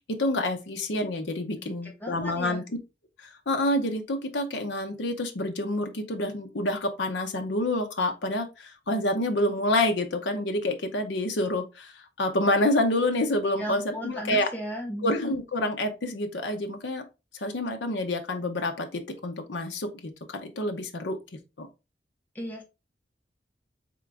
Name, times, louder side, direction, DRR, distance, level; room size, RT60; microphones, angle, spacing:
voice 1, 0.1-2.8 3.2-14.5 15.0-17.0 17.3-21.2 21.6-21.7, left 1 dB, 90° left, 0.8 m, -28 dB
voice 2, 1.6-2.6 13.6-15.1 22.3-22.6, equal, 10° left, 1.1 m, -36 dB
3.8 x 3.7 x 3.3 m
head